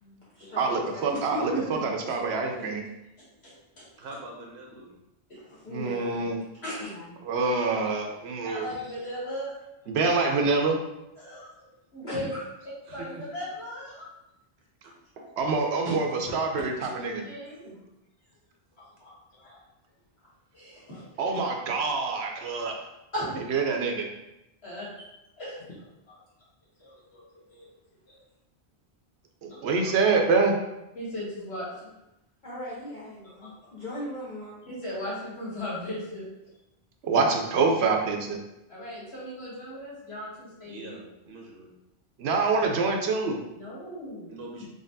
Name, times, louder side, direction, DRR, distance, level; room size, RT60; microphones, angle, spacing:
voice 1, 0.0-1.0 1.3-1.4 2.0-2.2 2.6-2.7 5.6-6.2 6.8-7.2 12.0-12.4 15.8-16.4 16.7-16.9 17.6-17.9 32.4-34.5, left 1 dB, 45° left, -9 dB, 1.0 m, -39 dB
voice 2, 0.6-2.8 5.7-6.4 7.2-8.7 9.9-10.8 15.4-16.1 16.3-17.2 21.2-22.7 23.5-24.1 29.4-30.6 37.0-38.4 42.2-43.4, right 4 dB, 85° right, 3 dB, 0.9 m, -26 dB
voice 3, 1.1-1.8 3.4-3.8 5.3-5.6 6.6-6.8 8.4-9.5 11.2-11.5 11.9-12.3 12.9-14.1 17.2-17.7 18.8-19.6 20.5-21.0 23.1-23.4 24.6-24.9 25.4-25.6 26.8-27.2 27.5-27.7 28.1-28.2 29.5-29.9 31.0-31.9 34.7-36.3 38.7-40.9 43.5-44.4, equal, 75° left, -9 dB, 2.0 m, -37 dB
voice 4, 4.0-5.0 12.0-12.1 12.9-13.3 14.8-15.2 40.6-41.7 44.3-44.7, right 2 dB, 60° right, 0 dB, 0.8 m, -43 dB
3.9 x 3.3 x 2.7 m, 0.91 s
omnidirectional pair, 1.1 m